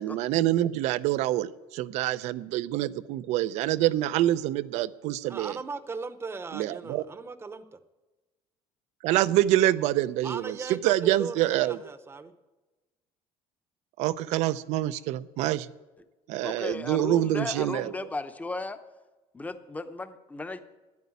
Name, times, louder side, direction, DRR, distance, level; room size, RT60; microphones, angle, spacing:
voice 1, 0.0-5.6 6.5-7.0 9.0-11.8 14.0-15.7 16.3-17.9, right 14 dB, 75° right, 15 dB, 0.5 m, -26 dB
voice 2, 5.3-7.8 10.2-12.3, right 4 dB, 20° right, 12 dB, 0.8 m, -38 dB
voice 3, 16.4-18.8 19.3-20.6, left 2 dB, 15° left, 10 dB, 0.8 m, -35 dB
9.5 x 9.2 x 9.5 m, 1.2 s
cardioid pair, 120°, 12 cm